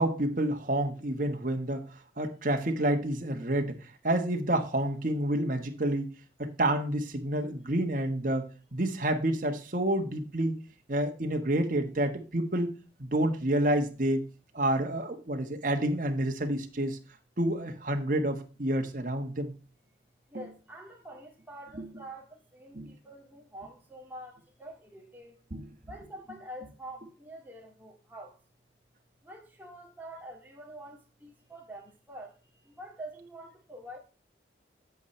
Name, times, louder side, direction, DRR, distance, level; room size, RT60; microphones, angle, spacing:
voice 1, 0.0-1.9 2.2-6.1 6.4-10.6 10.9-12.7 13.0-14.2 14.5-17.0 17.4-19.5 20.3-20.4 22.7-22.9 25.5-25.6, right 1 dB, 45° right, 1.3 m, -29 dB
voice 2, 20.3-25.4 25.7-28.4 29.2-34.0, right 1 dB, 10° right, 2.0 m, -46 dB
8.4 x 8.2 x 3.2 m
head